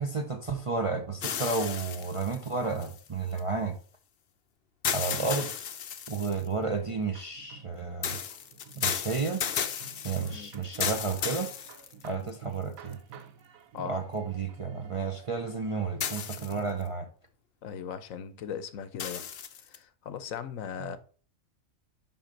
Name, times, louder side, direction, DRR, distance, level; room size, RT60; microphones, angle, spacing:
voice 1, 0.0-3.8 4.9-5.5 6.1-8.2 8.7-9.4 10.0-11.5 12.0-13.0 13.8-17.1, right 4 dB, 35° right, 0.5 m, -32 dB
sound 1, 1.2-3.4 4.8-6.5 8.0-12.3 12.9-13.0 16.0-16.8 19.0-19.8, left 8 dB, 55° left, 0.7 m, -34 dB
sound 2, 6.6-16.8, right 6 dB, 80° right, 1.2 m, -51 dB
voice 2, 13.7-14.1 17.6-19.2 19.6-21.0, left 7 dB, 75° left, 1.1 m, -38 dB
5.8 x 5.3 x 5.1 m
omnidirectional pair, 1.4 m